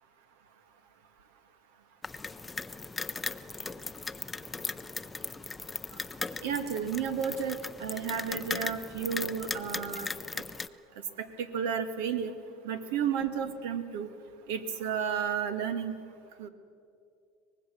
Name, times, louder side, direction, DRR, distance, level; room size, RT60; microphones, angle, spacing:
sound 1, 2.0-10.7, left 3 dB, 15° left, 0.6 m, -38 dB
voice 1, 6.4-10.1 11.2-11.3 11.5-12.3 12.6-14.1 14.5-16.0 16.4-16.5, right 7 dB, 85° right, 9 dB, 1.8 m, -32 dB
24.0 x 19.5 x 7.0 m, 2.5 s
supercardioid pair, 125°, 0 cm